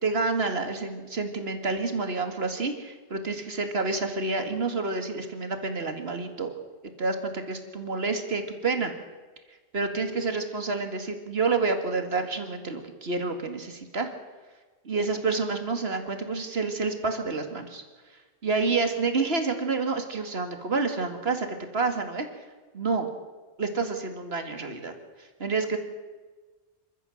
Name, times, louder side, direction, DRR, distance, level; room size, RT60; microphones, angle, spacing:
voice 1, 0.0-6.5 7.0-8.9 9.7-14.1 14.9-17.8 18.4-21.5 21.7-22.3 22.7-23.1 23.6-24.9 25.2-25.8, right 4 dB, 55° right, 7 dB, 2.4 m, -28 dB
26.5 x 14.0 x 7.9 m, 1.3 s
omnidirectional pair, 1.3 m